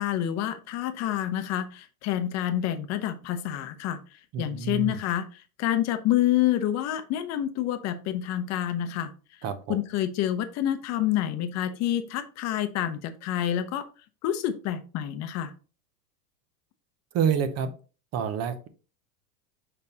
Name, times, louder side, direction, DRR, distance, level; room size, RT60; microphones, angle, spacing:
voice 1, 0.0-4.0 4.4-9.1 9.7-13.9 14.2-15.5, left 12 dB, 35° left, 10 dB, 0.7 m, -28 dB
voice 2, 4.3-5.0 9.4-9.8 17.1-17.7 18.1-18.7, right 7 dB, 30° right, 11 dB, 0.7 m, -28 dB
6.4 x 5.4 x 2.8 m, 0.35 s
supercardioid pair, 140°, 48 cm